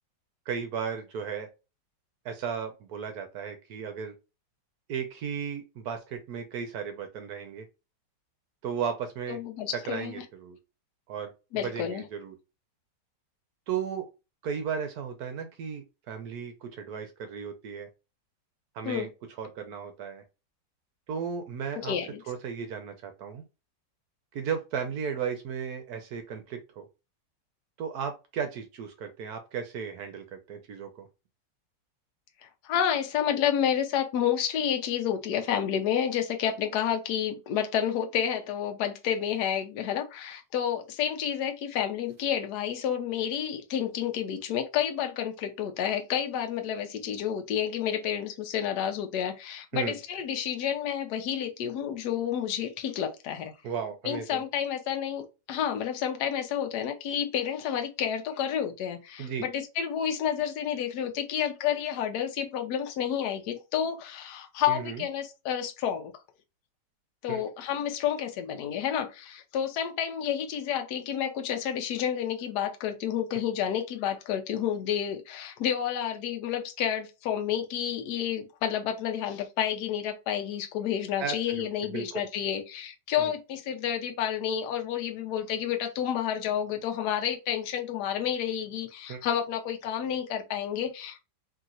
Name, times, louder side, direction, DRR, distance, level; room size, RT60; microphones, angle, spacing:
voice 1, 0.5-1.5 2.2-4.1 4.9-7.7 8.6-9.4 9.7-10.6 11.1-12.3 13.7-14.1 14.4-17.9 18.7-19.1 19.4-20.2 21.1-21.9 22.3-23.4 24.3-26.8 27.8-31.1 49.7-50.0 53.6-54.4 59.2-59.5 64.7-65.0 67.3-67.4 81.2-82.2 83.2-83.3 89.1-89.2, right 7 dB, 70° right, 1.0 m, -35 dB
voice 2, 9.3-10.2 11.5-12.1 18.8-19.1 21.8-22.2 32.6-53.5 54.0-66.1 67.2-91.2, left 9 dB, 70° left, 1.1 m, -30 dB
3.1 x 2.8 x 2.4 m
omnidirectional pair, 1.9 m